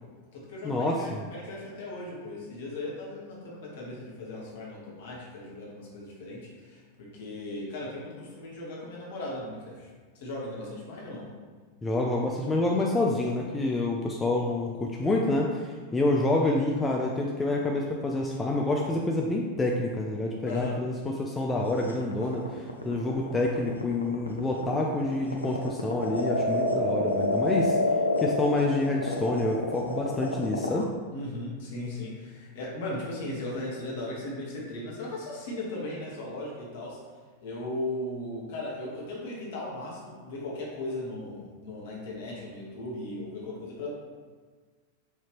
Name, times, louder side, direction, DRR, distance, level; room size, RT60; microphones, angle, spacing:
voice 1, 0.0-11.3 20.4-20.8 31.1-37.0 37.4-43.9, left 2 dB, 55° left, -4 dB, 1.1 m, -37 dB
voice 2, 0.6-1.2 11.8-27.8 28.2-30.9, left 2 dB, 15° left, -1 dB, 0.3 m, -27 dB
sound 1, 21.9-30.8, left 1 dB, 85° left, 0.4 m, -28 dB
4.8 x 2.8 x 3.0 m, 1.5 s
figure-of-eight pair, 90°, 0 cm